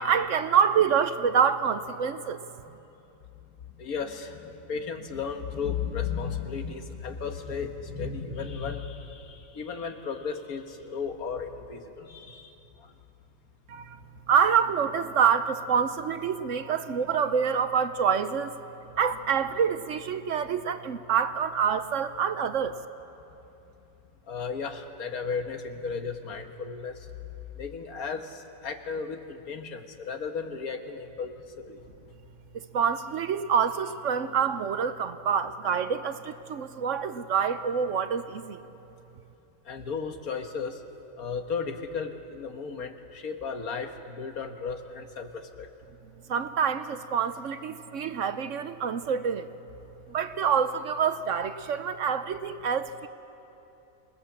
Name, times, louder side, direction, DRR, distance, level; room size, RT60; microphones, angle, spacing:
voice 1, 0.0-2.4 13.7-14.0 14.3-18.6 19.0-22.8 32.5-38.6 46.3-49.5 50.1-53.1, right 7 dB, 65° right, 11 dB, 1.0 m, -26 dB
voice 2, 3.8-12.5 12.8-12.9 16.6-16.9 24.3-26.9 27.6-31.8 39.6-40.8 41.2-45.7, left 5 dB, 75° left, 5 dB, 1.8 m, -35 dB
26.5 x 19.0 x 7.4 m, 2.9 s
omnidirectional pair, 1.5 m